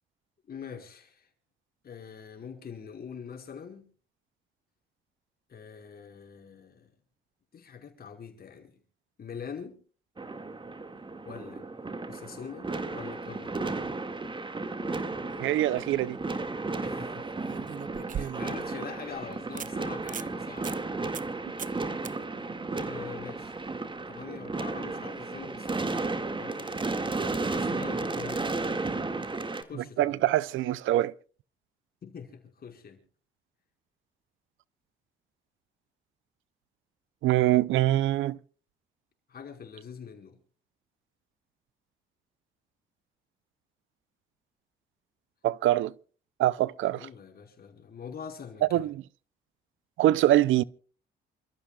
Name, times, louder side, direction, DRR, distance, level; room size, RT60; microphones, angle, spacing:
voice 1, 0.5-1.3 1.8-3.9 5.5-6.9 7.5-8.8 9.2-9.8 11.2-11.6 12.1-13.6 16.8-17.7 18.1-20.8 21.7-21.8 22.8-23.5 24.1-28.6 29.1-29.4 29.7-30.2 32.0-33.0 39.3-40.4 46.9-48.9, left 7 dB, 50° left, 5.3 m, -44 dB
sound 1, 10.2-29.6, right 3 dB, 25° right, 2.1 m, -34 dB
voice 2, 15.4-16.2 30.0-31.1 37.2-38.4 45.4-45.9 46.4-47.1 48.7-49.0 50.0-50.6, right 14 dB, 80° right, 0.6 m, -24 dB
sound 2, 15.7-16.0 17.4-18.7 19.1-19.2 19.6-19.7 20.0-20.3 20.6-20.8 21.1-21.3 21.6-21.8 22.0-22.1 25.2-25.3, right 8 dB, 40° right, 0.6 m, -38 dB
28.5 x 14.0 x 2.4 m
cardioid pair, 90°, 20 cm